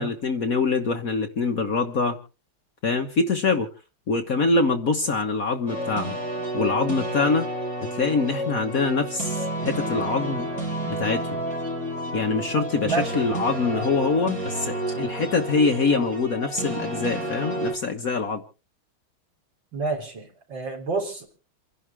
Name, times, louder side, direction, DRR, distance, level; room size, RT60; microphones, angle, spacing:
voice 1, 0.0-2.2 2.8-3.7 4.1-6.2 6.5-7.5 7.8-10.5 10.9-11.4 12.1-18.4, left 4 dB, 45° left, 5 dB, 1.5 m, -24 dB
sound 1, 5.7-17.7, right 1 dB, 40° right, 7.7 m, -30 dB
voice 2, 12.8-13.2 19.7-21.3, right 4 dB, 60° right, 0 dB, 4.5 m, -29 dB
28.5 x 11.0 x 3.5 m, 0.36 s
omnidirectional pair, 2.3 m